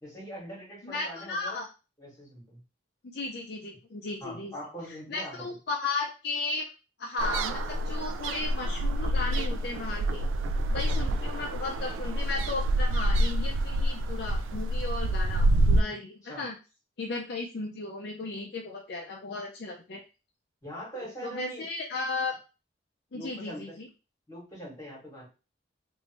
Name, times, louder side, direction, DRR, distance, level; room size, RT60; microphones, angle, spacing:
voice 1, 0.0-1.6 2.0-2.6 4.2-5.4 10.9-11.0 15.0-15.1 16.2-16.4 20.6-21.6 23.1-23.8 24.3-25.3, equal, 15° left, -4 dB, 1.8 m, -42 dB
voice 2, 0.8-1.7 3.0-4.5 4.9-6.6 7.0-10.2 10.7-16.6 17.0-20.0 21.0-22.3 23.1-23.9, left 3 dB, 55° left, 0 dB, 0.5 m, -35 dB
sound 1, 7.2-15.8, right 1 dB, 90° right, 0.3 m, -27 dB
3.2 x 2.6 x 2.9 m, 0.30 s
head